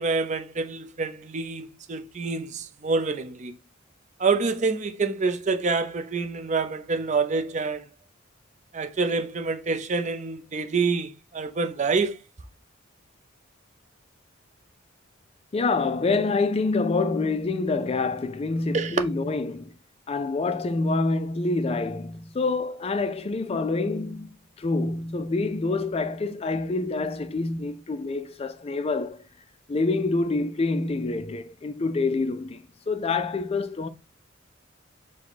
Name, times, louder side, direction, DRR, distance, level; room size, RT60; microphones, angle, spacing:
voice 1, 0.0-3.6 4.2-7.8 8.7-12.2 18.7-19.0, right 4 dB, 35° right, 0.5 m, -27 dB
voice 2, 15.5-19.7 20.1-29.3 29.7-33.9, left 3 dB, 30° left, 0.4 m, -27 dB
4.7 x 2.2 x 4.0 m
head